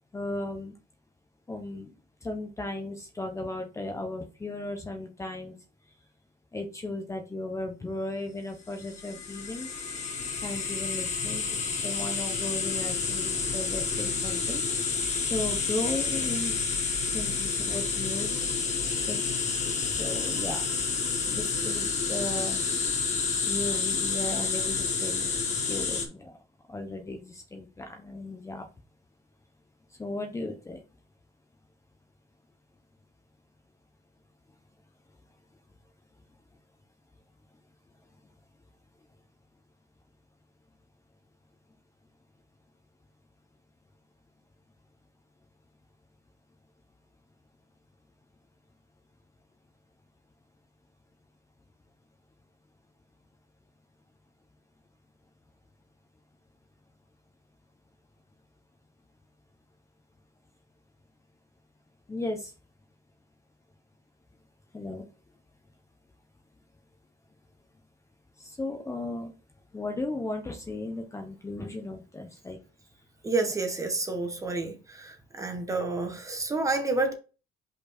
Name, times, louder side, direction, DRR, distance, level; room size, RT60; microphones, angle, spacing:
voice 1, 0.1-0.7 1.5-1.9 2.2-5.6 6.5-9.7 10.4-14.6 15.3-16.5 17.1-18.4 19.1-19.2 19.8-20.6 21.2-22.6 23.4-26.3 26.7-28.7 30.0-30.8 62.1-62.5 64.7-65.0 68.4-69.3 69.7-72.6 73.4-73.5, left 2 dB, 15° left, 1.0 m, -36 dB
sound 1, 8.8-26.1, left 5 dB, 45° left, 1.7 m, -29 dB
voice 2, 73.2-77.1, right 3 dB, 20° right, 1.4 m, -29 dB
5.5 x 4.5 x 4.3 m
cardioid pair, 110°, 17 cm